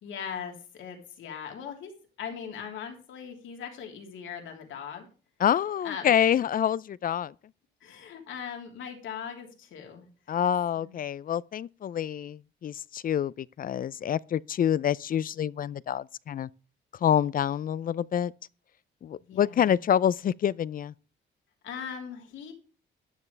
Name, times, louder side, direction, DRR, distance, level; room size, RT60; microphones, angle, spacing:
voice 1, 0.0-1.9 2.2-5.1 5.8-6.3 7.8-10.1 10.8-10.9 19.2-19.7 21.6-22.5, left 7 dB, 80° left, 3.1 m, -40 dB
voice 2, 5.4-7.3 10.3-16.5 17.0-18.3 19.0-20.9, left 9 dB, 45° left, 0.4 m, -27 dB
13.0 x 9.7 x 3.3 m
cardioid pair, 90°, 20 cm